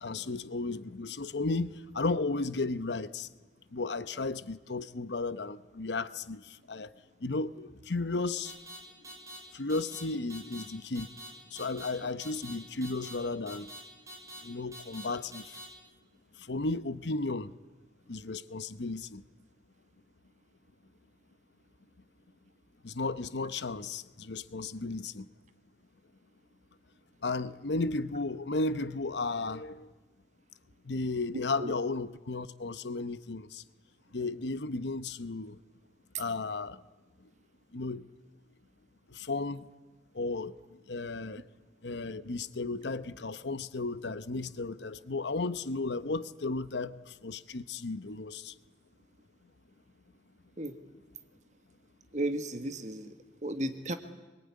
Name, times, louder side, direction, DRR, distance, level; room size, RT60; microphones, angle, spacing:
voice 1, 0.0-3.3 3.7-6.9 7.2-8.5 9.5-11.1 11.5-13.7 14.4-15.6 16.4-17.5 18.1-19.2 22.8-25.3 27.2-29.9 30.8-33.6 34.1-35.6 36.2-36.8 37.7-38.1 39.1-39.7 40.1-40.5 40.9-41.4 41.8-48.5, left 3 dB, 75° left, 0.9 m, -34 dB
sound 1, 8.4-8.8 9.0-9.4 9.7-10.0 10.3-10.6 10.9-11.3 11.6-11.9 12.2-12.5 12.8-13.1 13.5-13.8 14.1-14.4 14.7-15.0 15.3-15.6, right 1 dB, 20° right, 7.4 m, -45 dB
voice 2, 52.1-53.1 53.4-53.9, right 1 dB, 40° right, 1.5 m, -33 dB
25.5 x 22.5 x 9.8 m
head